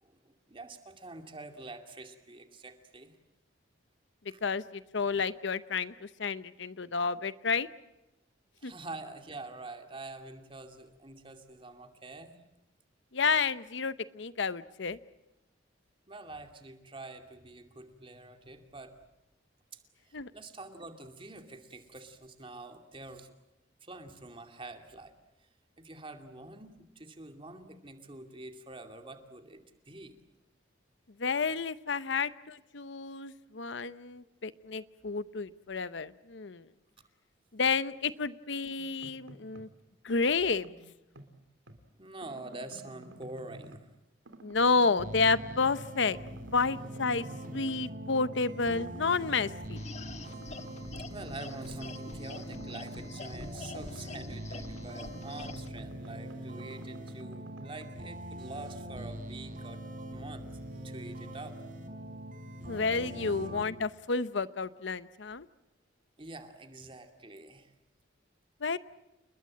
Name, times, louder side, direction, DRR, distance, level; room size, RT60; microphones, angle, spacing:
voice 1, 0.0-3.1 4.3-4.4 8.6-12.4 16.1-18.9 19.7-19.8 20.1-23.3 23.8-25.1 25.4-25.5 25.8-30.2 42.0-43.9 50.2-50.7 51.1-59.8 60.1-60.5 60.7-61.6 62.6-62.8 63.2-63.3 66.2-67.7, right 2 dB, 25° right, 6 dB, 2.6 m, -46 dB
voice 2, 4.4-7.7 8.6-8.7 13.1-15.0 20.1-20.3 31.2-36.7 37.5-39.7 40.0-40.7 44.4-46.2 46.5-47.3 47.5-49.8 62.7-65.5 68.6-68.8, left 4 dB, 65° left, 15 dB, 0.8 m, -30 dB
sound 1, 38.8-39.8 40.1-41.8 42.2-44.0 44.3-46.0 46.3-47.9 48.2-49.9 50.3-54.2 54.5-57.9, right 1 dB, 80° right, 3.0 m, -52 dB
sound 2, 45.0-63.6, right 1 dB, 45° right, 3.8 m, -43 dB
sound 3, 49.8-55.7, left 3 dB, 35° left, 1.5 m, -46 dB
29.5 x 21.0 x 7.5 m, 0.95 s
head